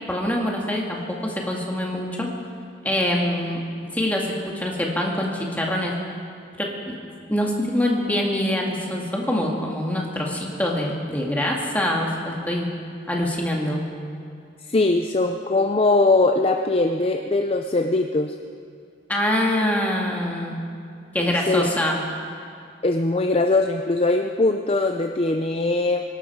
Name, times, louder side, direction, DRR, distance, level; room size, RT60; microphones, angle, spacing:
voice 1, 0.1-2.3 2.8-3.6 3.9-5.9 6.6-6.9 7.3-12.7 13.1-13.8 19.1-20.6 21.1-22.0, left 1 dB, 10° left, -1 dB, 2.0 m, -24 dB
voice 2, 14.7-18.3 21.2-21.7 22.8-26.0, left 2 dB, 30° left, 5 dB, 0.5 m, -21 dB
23.5 x 12.0 x 4.6 m, 2.4 s
head